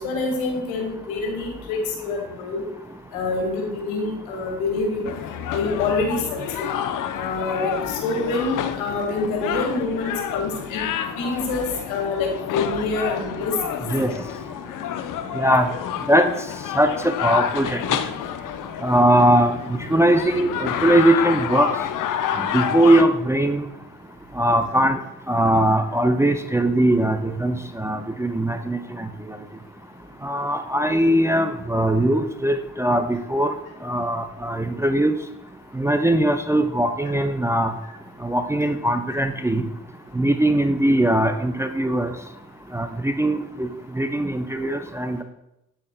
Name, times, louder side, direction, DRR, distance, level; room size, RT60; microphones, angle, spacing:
voice 1, 0.0-2.6 3.1-5.1 5.5-6.7 7.1-10.8 11.2-13.5 14.1-14.2 17.5-17.6, left 3 dB, 80° left, 1 dB, 1.9 m, -26 dB
sound 1, 5.0-23.0, left 9 dB, 50° left, 0.6 m, -29 dB
voice 2, 15.3-15.7 16.1-16.3 16.8-17.8 18.8-19.6 19.9-21.7 22.5-23.7 24.4-25.0 25.3-29.1 30.2-33.5 33.8-35.1 35.8-37.7 38.2-39.6 40.2-42.1 42.7-43.7 44.0-45.2, right 1 dB, 5° right, 7 dB, 0.5 m, -20 dB
8.7 x 8.3 x 2.2 m, 0.87 s
hypercardioid pair, 50°, 42 cm